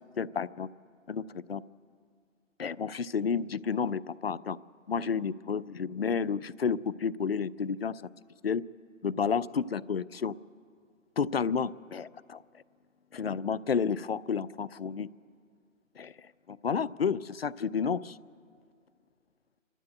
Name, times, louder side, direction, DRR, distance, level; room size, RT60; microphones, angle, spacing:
voice 1, 0.2-0.7 1.1-1.6 2.6-4.6 4.9-8.0 8.4-8.6 9.0-10.3 11.2-12.4 13.1-15.1 16.0-16.1 16.5-18.2, left 6 dB, 50° left, 19 dB, 0.5 m, -31 dB
27.5 x 13.0 x 8.2 m, 2.2 s
figure-of-eight pair, 160°, 39 cm